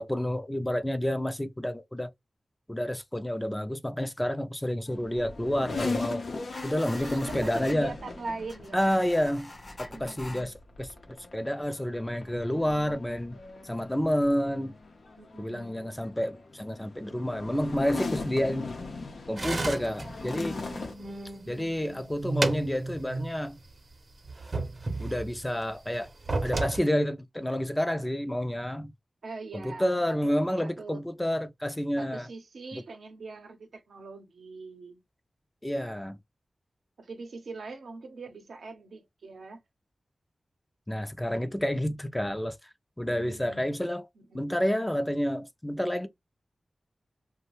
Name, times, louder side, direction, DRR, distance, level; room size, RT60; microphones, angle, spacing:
voice 1, 0.0-2.1 2.7-6.2 6.6-7.9 8.7-9.5 9.8-10.9 11.3-13.4 13.6-14.7 15.4-18.7 19.3-20.6 21.5-23.6 25.0-26.1 26.4-28.9 29.5-32.3 32.7-32.8 35.6-36.2 40.9-42.6 43.0-44.1 44.3-46.1, equal, 15° left, 0.4 m, -29 dB
sound 1, 4.9-20.9, left 3 dB, 85° left, 0.6 m, -39 dB
sound 2, 6.5-7.8 8.5-10.4, left 2 dB, 45° left, 0.9 m, -45 dB
voice 2, 6.9-8.8 9.9-10.5 15.2-16.0 21.4-22.1 29.2-31.0 32.0-35.0 37.0-39.6 43.0-43.8 44.2-44.5, right 3 dB, 85° right, 0.7 m, -42 dB
sound 3, 19.4-21.5 21.9-23.3 23.6-23.7 24.2-25.4 26.1-26.8, right 2 dB, 55° right, 0.7 m, -32 dB
2.5 x 2.1 x 3.0 m
cardioid pair, 45°, 0 cm